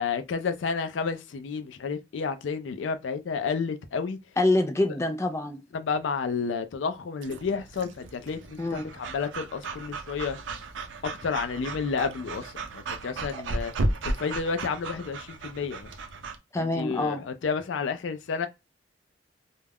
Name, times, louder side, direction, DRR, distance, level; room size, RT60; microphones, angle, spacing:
voice 1, 0.0-4.2 5.7-10.4 11.0-13.7 14.0-15.9 16.6-18.5, left 5 dB, 85° left, 0.4 m, -31 dB
voice 2, 4.4-5.6 8.6-8.8 16.5-17.2, left 2 dB, 15° left, 0.4 m, -25 dB
Breathing / Dog, 7.2-16.4, right 2 dB, 90° right, 0.4 m, -35 dB
2.3 x 2.1 x 3.4 m
head